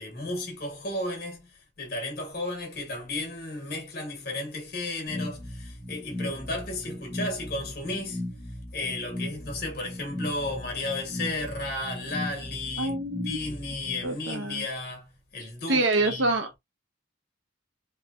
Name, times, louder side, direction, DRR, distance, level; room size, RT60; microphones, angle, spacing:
voice 1, 0.0-8.3 8.7-13.0 13.2-16.3, left 2 dB, 50° left, 1.5 m, -34 dB
sound 1, 5.1-14.1, left 1 dB, 5° left, 1.0 m, -37 dB
voice 2, 12.8-13.4 14.0-14.7 15.7-16.6, right 2 dB, 70° right, 1.0 m, -26 dB
3.4 x 3.2 x 2.5 m
head